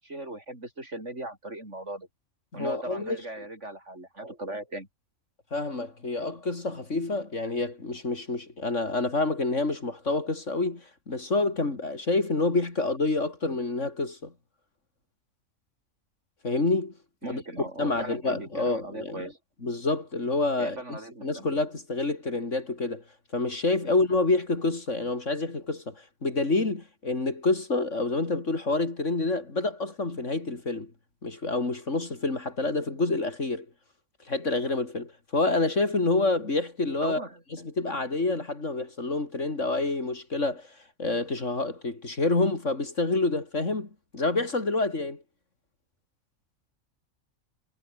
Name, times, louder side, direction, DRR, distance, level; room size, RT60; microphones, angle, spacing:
voice 1, 0.0-2.1 2.5-4.9 17.2-19.4 20.6-21.5 37.0-37.4, right 1 dB, 55° right, 7.2 m, -38 dB
voice 2, 2.5-3.2 5.5-14.3 16.4-16.9 17.3-17.4 17.8-19.3 19.6-23.0 23.3-30.9 31.2-33.7 34.3-37.2 37.5-45.2, left 3 dB, 60° left, 3.7 m, -28 dB
omnidirectional pair, 1.4 m